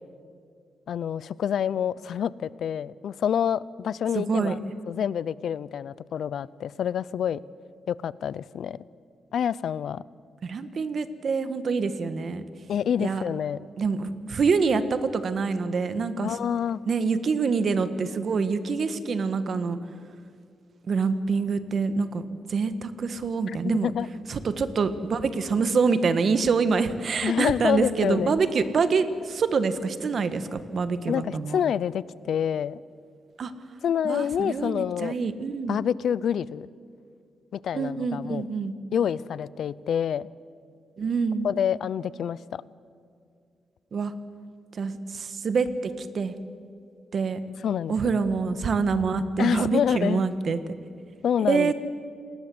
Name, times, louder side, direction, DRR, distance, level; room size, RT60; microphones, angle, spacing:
voice 1, 0.9-4.6 4.9-7.4 7.9-8.8 9.3-10.0 12.7-13.6 16.2-16.8 23.5-24.1 27.2-28.4 31.1-32.8 33.8-35.1 35.7-36.7 37.5-38.5 38.9-40.3 41.4-42.6 47.6-48.0 49.4-50.3 51.2-51.7, left 8 dB, 70° left, 20 dB, 0.6 m, -27 dB
voice 2, 4.1-4.6 10.4-12.4 13.0-13.2 13.8-16.4 16.9-19.8 20.9-22.2 22.5-23.9 24.3-31.6 33.4-33.5 34.0-35.8 37.7-38.7 41.0-41.5 43.9-44.1 44.7-46.3 47.1-47.4 47.9-50.7 51.5-51.7, right 5 dB, 50° right, 12 dB, 1.5 m, -26 dB
28.5 x 20.0 x 7.9 m, 2.4 s
wide cardioid pair, 135°, 0 cm